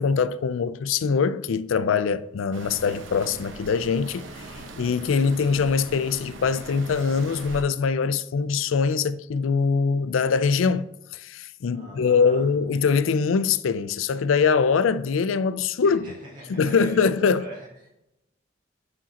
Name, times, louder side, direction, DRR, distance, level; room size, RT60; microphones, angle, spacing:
voice 1, 0.0-4.5 4.8-10.9 11.1-16.1 16.5-17.5, left 5 dB, 85° left, 0.4 m, -23 dB
sound 1, 2.5-7.6, right 2 dB, 70° right, 0.9 m, -40 dB
voice 2, 11.7-12.5 15.8-17.9, equal, 45° right, 1.6 m, -42 dB
8.5 x 4.9 x 2.9 m
head